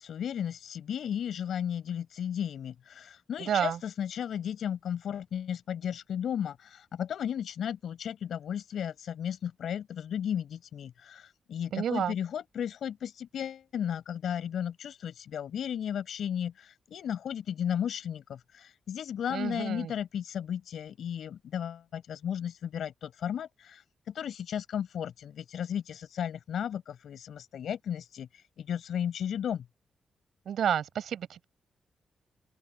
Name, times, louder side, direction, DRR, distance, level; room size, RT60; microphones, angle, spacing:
voice 1, 0.0-28.3 28.6-29.6, left 9 dB, 70° left, 4.6 m, -34 dB
voice 2, 3.5-3.8 11.7-12.1 19.3-19.9 30.5-31.4, right 9 dB, 70° right, 5.8 m, -30 dB
open air
wide cardioid pair, 175°, 0 cm